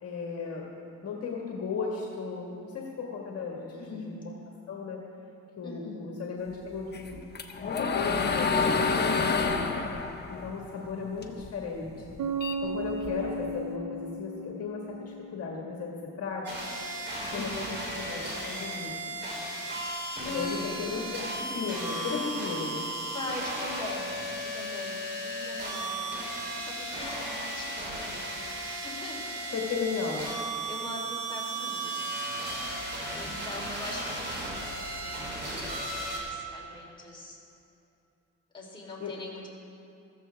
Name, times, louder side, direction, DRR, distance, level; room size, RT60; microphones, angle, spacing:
voice 1, 0.0-0.7 1.0-3.7 4.1-4.2 4.7-5.0 5.6-7.2 7.6-9.7 10.3-11.9 12.6-16.5 17.3-17.6 18.0-19.2 20.3-22.8 29.5-30.3 33.1-33.3 39.0-39.1, left 5 dB, 55° left, -1 dB, 1.7 m, -35 dB
voice 2, 3.7-4.1 5.6-6.0 17.3-17.6 20.1-20.5 23.1-26.2 26.6-29.4 30.6-32.3 33.1-37.4 38.5-39.5, left 2 dB, 15° left, -4 dB, 3.5 m, -42 dB
sound 1, 6.9-11.5 11.8-13.4, left 4 dB, 35° left, 1.2 m, -28 dB
Bass guitar, 12.2-15.8, right 3 dB, 80° right, 0.8 m, -35 dB
sound 2, 16.4-36.2, right 1 dB, 35° right, 3.5 m, -35 dB
14.5 x 14.0 x 3.5 m, 2.7 s
cardioid pair, 90°, 30 cm